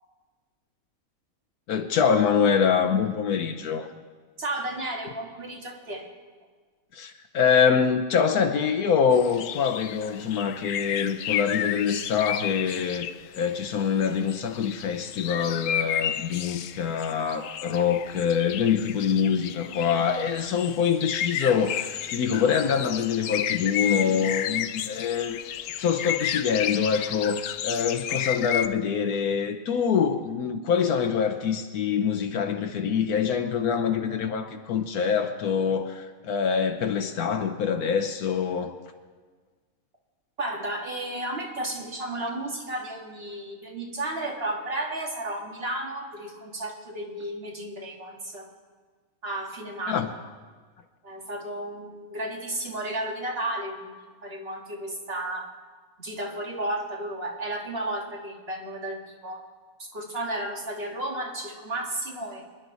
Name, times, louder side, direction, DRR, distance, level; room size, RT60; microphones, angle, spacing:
voice 1, 1.7-3.9 6.9-13.1 13.4-25.4 25.8-38.7 49.9-50.1, left 7 dB, 85° left, 1.3 m, -25 dB
voice 2, 4.4-6.1 40.4-48.5 49.2-50.0 51.0-53.9 54.2-55.5 56.0-59.4 59.8-62.4, right 1 dB, 40° right, 2.2 m, -33 dB
sound 1, 9.1-13.5 14.0-28.7, left 10 dB, 70° left, 0.9 m, -32 dB
25.5 x 11.0 x 4.0 m
omnidirectional pair, 1.5 m